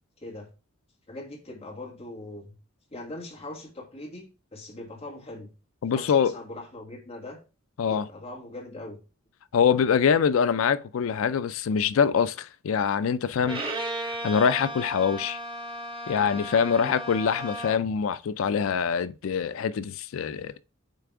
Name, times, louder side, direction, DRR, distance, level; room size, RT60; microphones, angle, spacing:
voice 1, 0.2-0.5 1.1-2.5 2.9-5.5 5.9-7.4 7.9-9.0 16.8-17.0, left 1 dB, 30° left, 1.7 m, -41 dB
voice 2, 5.8-6.3 7.8-8.1 9.5-13.6 14.0-15.4 16.1-20.6, left 6 dB, 75° left, 0.4 m, -24 dB
Bowed string instrument, 13.4-18.0, right 1 dB, 25° right, 1.6 m, -35 dB
8.5 x 3.4 x 3.5 m
head